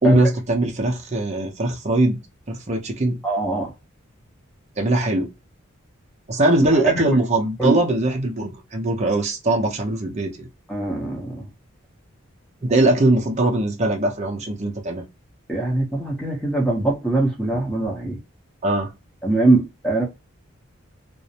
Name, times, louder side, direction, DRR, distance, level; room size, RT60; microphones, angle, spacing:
voice 1, 0.0-2.2 2.5-3.2 4.8-5.3 6.3-10.5 12.6-15.0 18.6-18.9, right 2 dB, 30° right, 0.6 m, -21 dB
voice 2, 3.2-3.7 6.7-7.1 7.6-7.8 10.7-11.4 15.5-18.2 19.2-20.0, right 2 dB, 5° left, 0.7 m, -22 dB
2.5 x 2.0 x 2.7 m
head